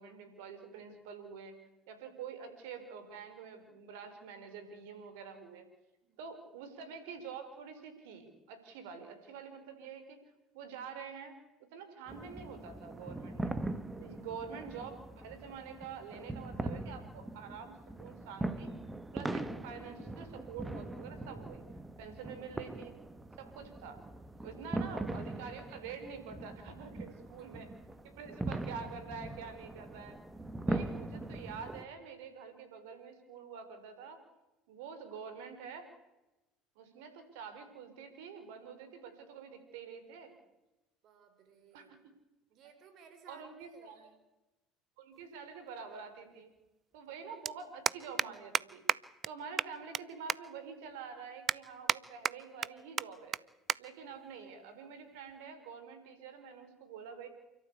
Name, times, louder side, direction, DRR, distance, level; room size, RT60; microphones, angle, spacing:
voice 1, 0.0-1.5 1.9-5.7 6.2-11.4 11.7-13.5 13.9-18.8 19.1-21.7 22.0-22.9 23.4-24.0 24.4-27.7 28.0-30.2 30.6-34.2 34.7-35.9 36.7-40.3 41.7-42.0 43.3-44.0 45.0-46.5 46.9-48.8 49.2-53.4 53.8-57.3, right 6 dB, 75° right, 9 dB, 5.0 m, -47 dB
sound 1, 12.1-31.8, right 2 dB, 15° right, 1.9 m, -41 dB
voice 2, 27.0-27.5 41.0-41.9 42.5-44.2, right 6 dB, 55° right, 8 dB, 5.9 m, -60 dB
sound 2, 45.2-45.3 46.7-46.8 46.9-47.1 47.4-47.5 47.9-48.3 48.5-48.6 48.9-49.0 49.2-49.3 49.6-50.0 50.3-50.4 50.9-51.0 51.5-52.0 52.2-52.7 53.0-53.1 53.3-53.4 53.7-53.8 54.1-54.3 55.1-55.4, right 7 dB, 40° right, 0.7 m, -31 dB
29.0 x 13.0 x 8.4 m, 1.0 s
hypercardioid pair, 70°, 0 cm